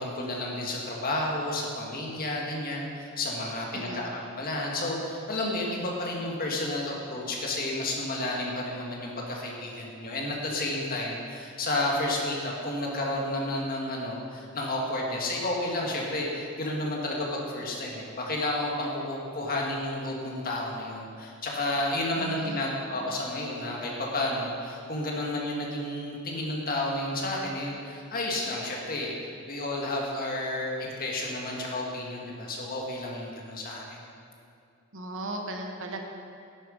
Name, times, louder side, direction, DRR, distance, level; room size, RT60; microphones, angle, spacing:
voice 1, 0.0-29.1 29.5-34.0, left 1 dB, 45° left, -2 dB, 1.8 m, -31 dB
voice 2, 22.2-22.7 34.9-36.0, right 1 dB, 60° right, 3 dB, 1.0 m, -37 dB
10.5 x 9.1 x 5.2 m, 2.5 s
head